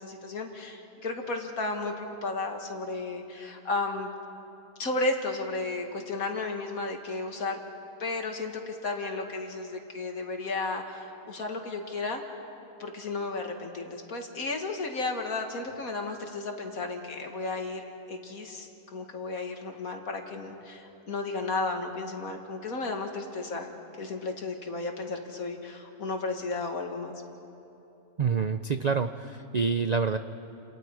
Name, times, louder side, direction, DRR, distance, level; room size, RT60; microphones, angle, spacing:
voice 1, 0.0-4.1 4.8-7.6 8.0-12.2 12.8-17.8 18.1-23.7 24.0-27.1, left 3 dB, 70° left, 3 dB, 2.4 m, -33 dB
voice 2, 28.2-30.2, right 5 dB, 75° right, 9 dB, 0.3 m, -27 dB
30.0 x 28.0 x 4.8 m, 2.8 s
omnidirectional pair, 1.6 m